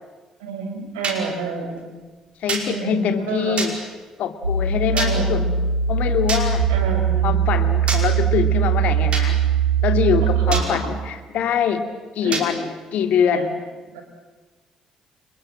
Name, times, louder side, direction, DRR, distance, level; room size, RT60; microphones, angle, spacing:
voice 1, 0.4-2.1 2.7-3.6 4.9-5.6 6.7-7.3 10.2-10.9 12.2-12.6 13.3-13.5 13.9-14.0, right 4 dB, 75° right, 4 dB, 5.0 m, -29 dB
sound 1, 1.0-1.2 2.5-2.7 3.6-3.7 5.0-5.1 6.3-6.4 7.9-8.0 9.1-9.3 10.5-10.7 12.3-12.5, right 4 dB, 45° right, 5.3 m, -25 dB
voice 2, 2.4-3.7 4.2-5.4 5.9-6.7 7.2-9.4 9.8-11.9 12.2-13.5, left 8 dB, 60° left, 8 dB, 2.4 m, -23 dB
sound 2, 4.4-10.6, right 7 dB, 90° right, 1.4 m, -20 dB
29.5 x 26.0 x 7.7 m, 1.3 s
figure-of-eight pair, 45°, 3 cm